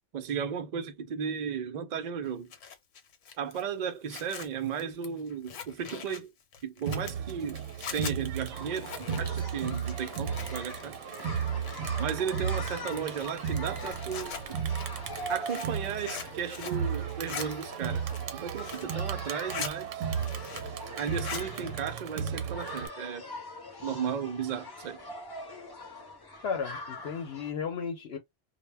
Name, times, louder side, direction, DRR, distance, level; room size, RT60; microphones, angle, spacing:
voice 1, 0.1-2.5 3.4-6.3 6.6-7.6 7.9-11.0 12.0-14.6 15.3-20.1 21.0-23.3 23.8-25.0, right 7 dB, 65° right, 0.4 m, -35 dB
Zipper (clothing), 2.3-10.8 11.1-12.1 12.5-16.8 17.1-17.5 17.9-18.9 19.3-19.7 20.1-20.8 21.1-21.5, left 7 dB, 90° left, 1.1 m, -42 dB
Crowd, 6.9-22.9, right 7 dB, 90° right, 0.9 m, -35 dB
sound 1, 8.5-27.5, left 1 dB, 25° left, 0.6 m, -43 dB
voice 2, 26.4-28.2, left 6 dB, 65° left, 0.8 m, -34 dB
2.1 x 2.1 x 3.2 m
omnidirectional pair, 1.3 m